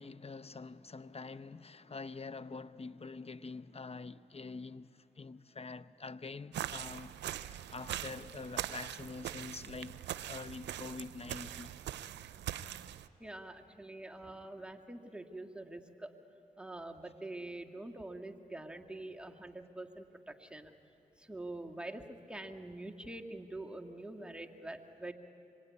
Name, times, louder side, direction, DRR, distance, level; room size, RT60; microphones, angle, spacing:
voice 1, 0.0-7.2 7.4-11.8, left 4 dB, 35° left, 0.9 m, -46 dB
sound 1, 6.5-13.1, right 11 dB, 85° right, 0.6 m, -42 dB
voice 2, 13.2-16.2 16.6-20.7 21.2-25.1, right 2 dB, 5° right, 2.2 m, -45 dB
25.5 x 23.5 x 9.7 m
supercardioid pair, 45°, 18 cm